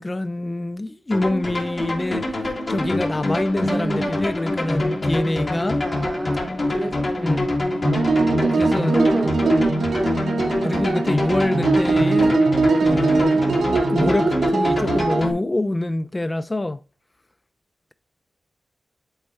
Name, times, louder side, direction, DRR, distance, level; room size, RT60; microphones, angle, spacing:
voice 1, 0.0-2.4 2.7-5.8 7.2-7.5 8.5-8.9 10.6-12.4 12.8-13.5 13.9-16.8, left 1 dB, 25° left, 0.4 m, -25 dB
sound 1, 1.1-15.3, left 2 dB, 45° left, 1.9 m, -25 dB
voice 2, 3.6-4.3 5.8-8.0 8.9-9.3 9.8-10.2, right 2 dB, 25° right, 0.7 m, -32 dB
sound 2, 7.8-15.2, right 3 dB, 80° right, 0.9 m, -21 dB
7.8 x 4.3 x 3.1 m
cardioid pair, 70°, 0 cm